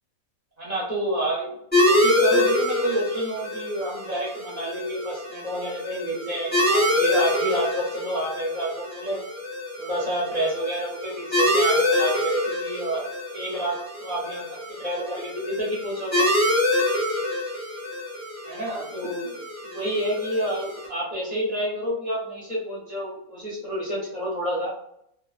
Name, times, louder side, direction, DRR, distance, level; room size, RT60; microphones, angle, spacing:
voice 1, 0.6-1.5 1.9-9.2 9.8-14.4 14.8-16.3 18.5-19.3 19.7-24.7, right 1 dB, 35° right, -6 dB, 0.9 m, -29 dB
sound 1, 1.7-20.9, left 1 dB, 10° left, 0.8 m, -26 dB
2.5 x 2.2 x 2.4 m, 0.72 s
omnidirectional pair, 1.5 m